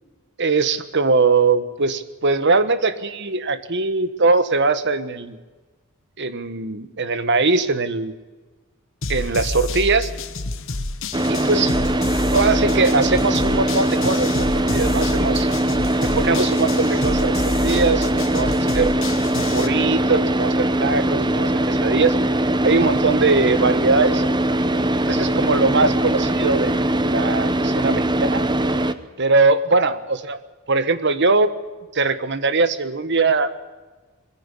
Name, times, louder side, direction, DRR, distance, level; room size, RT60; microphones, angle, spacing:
voice 1, 0.4-5.4 6.2-8.1 9.1-10.1 11.3-11.7 12.3-15.5 16.0-18.9 19.5-22.2 22.6-24.2 25.0-28.4 29.2-30.4 30.7-31.5 31.9-33.6, right 3 dB, 50° right, 12 dB, 1.4 m, -21 dB
sound 1, 9.0-19.7, left 3 dB, 60° left, 1.3 m, -29 dB
Car / Idling, 11.1-28.9, right 1 dB, 20° right, 0.9 m, -21 dB
21.5 x 15.5 x 9.9 m, 1.3 s
head